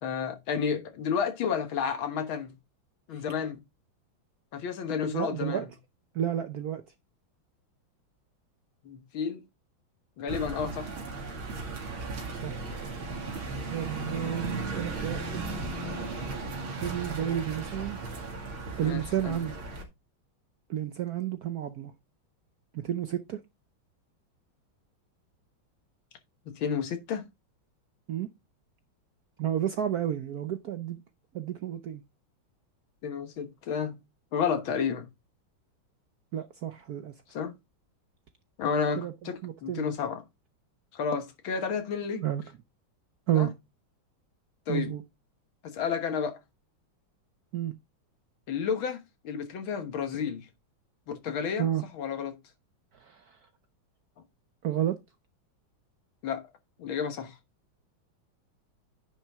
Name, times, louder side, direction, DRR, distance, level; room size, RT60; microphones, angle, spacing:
voice 1, 0.0-2.5 3.1-3.6 4.5-5.7 8.9-9.4 10.2-10.9 18.8-19.4 26.5-27.2 33.0-34.0 34.3-35.1 37.3-37.5 38.6-40.2 40.9-42.2 43.3-43.5 44.7-45.0 45.6-46.4 48.5-50.5 51.1-52.4 56.2-56.4 56.8-57.4, left 6 dB, 80° left, 2.1 m, -31 dB
voice 2, 5.1-5.7 6.1-6.8 12.3-12.6 13.7-15.6 16.7-18.0 18.8-19.5 20.7-21.9 22.7-23.4 28.1-28.3 29.4-31.0 31.3-32.0 36.3-37.1 39.0-39.1 39.4-39.9 42.2-42.4 43.3-43.5 44.7-45.0 47.5-47.7 51.6-51.8 53.0-53.2 54.6-55.0, right 11 dB, 65° right, 1.0 m, -31 dB
sound 1, 10.3-19.8, right 3 dB, 85° right, 3.1 m, -36 dB
10.0 x 5.8 x 3.5 m
omnidirectional pair, 2.2 m